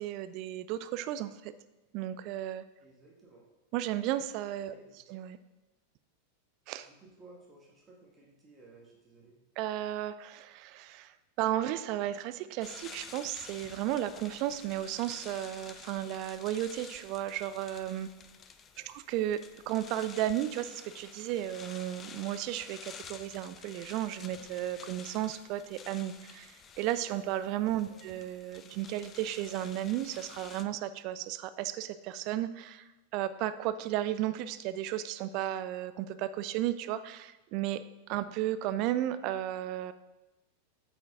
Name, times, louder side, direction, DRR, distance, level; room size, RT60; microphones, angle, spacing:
voice 1, 0.0-1.5 1.9-2.6 3.7-4.7 5.1-5.4 6.7-6.9 9.6-18.1 18.8-37.8 38.1-39.9, right 12 dB, 40° right, 13 dB, 0.4 m, -34 dB
voice 2, 2.8-3.5 4.6-5.0 6.8-9.4 18.7-18.9 27.8-28.0, right 2 dB, 15° right, -3 dB, 1.6 m, -57 dB
sound 1, 12.6-30.6, left 6 dB, 25° left, 0.4 m, -51 dB
8.3 x 5.0 x 3.7 m, 1.1 s
figure-of-eight pair, 90°, 0 cm